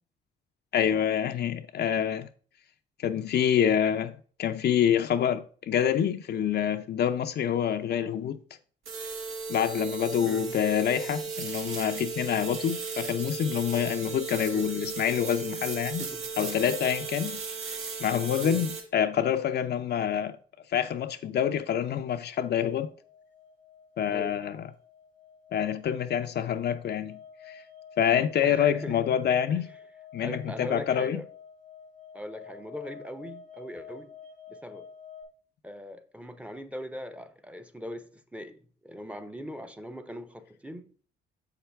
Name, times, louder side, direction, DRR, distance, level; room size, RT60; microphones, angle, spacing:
voice 1, 0.7-2.3 3.0-8.4 9.5-16.0 16.4-17.4 18.0-20.4 20.7-22.9 24.0-24.7 25.5-27.2 27.5-27.6 28.0-29.7 30.1-31.2, left 9 dB, 55° left, 0.5 m, -27 dB
sound 1, 8.8-18.8, right 5 dB, 85° right, 1.5 m, -36 dB
sound 2, 22.2-35.2, left 7 dB, 65° right, 2.4 m, -50 dB
voice 2, 24.1-24.4 28.4-29.0 29.5-29.6 30.2-31.3 32.1-34.1 34.5-34.9 35.6-40.9, equal, 5° right, 0.7 m, -40 dB
7.0 x 5.8 x 3.4 m
cardioid pair, 90°, 20 cm